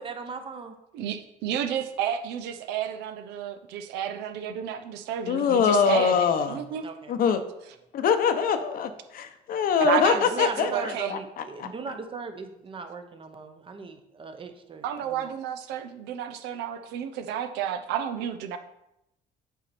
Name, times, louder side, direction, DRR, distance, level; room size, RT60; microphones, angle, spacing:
voice 1, 0.0-0.7 6.8-7.1 10.1-14.8 15.1-15.3, right 4 dB, 30° right, 7 dB, 0.8 m, -38 dB
voice 2, 0.9-6.8 9.8-11.1 14.8-18.6, right 9 dB, 90° right, 8 dB, 0.6 m, -31 dB
voice 3, 5.3-6.6 7.1-7.4 7.9-11.7, left 6 dB, 60° left, 9 dB, 0.7 m, -24 dB
8.2 x 4.4 x 4.2 m, 0.85 s
cardioid pair, 110°, 17 cm